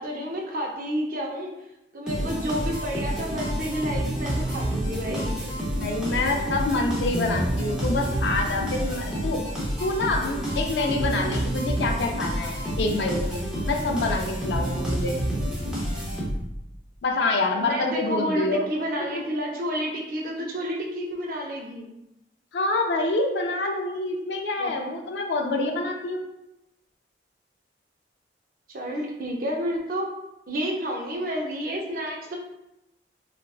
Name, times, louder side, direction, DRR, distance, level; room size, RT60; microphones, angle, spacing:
voice 1, 0.0-1.5 1.9-5.6 17.6-21.9 24.6-24.9 28.7-30.1 30.5-32.4, equal, 50° right, 0 dB, 0.5 m, -30 dB
sound 1, 2.1-16.6, equal, 5° right, 0.6 m, -29 dB
voice 2, 5.8-9.4 9.8-13.4 13.7-15.2 17.0-18.6 19.1-19.2 22.5-26.3, left 2 dB, 70° left, 3 dB, 0.4 m, -26 dB
3.4 x 2.3 x 2.3 m, 0.89 s
head